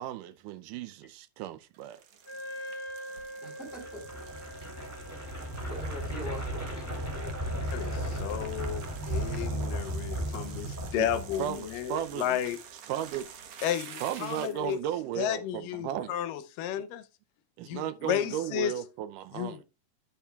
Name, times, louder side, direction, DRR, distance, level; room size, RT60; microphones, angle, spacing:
voice 1, 0.0-2.0 11.0-11.1 11.4-12.4 12.9-13.3 14.0-16.2 17.6-19.6, right 11 dB, 80° right, 2.1 m, -35 dB
sound 1, 1.7-14.7, right 7 dB, 60° right, 1.9 m, -49 dB
Wind instrument woodwind instrument, 2.3-9.6, equal, 50° left, 4.1 m, -46 dB
voice 2, 3.4-4.0 5.7-8.3, equal, 15° left, 4.0 m, -44 dB
sound 2, 3.7-11.7, right 1 dB, 5° right, 2.4 m, -35 dB
voice 3, 7.7-12.6 13.6-14.8 15.2-17.0 17.6-18.8 19.3-19.6, left 10 dB, 85° left, 2.3 m, -33 dB
11.5 x 8.3 x 2.3 m
omnidirectional pair, 3.8 m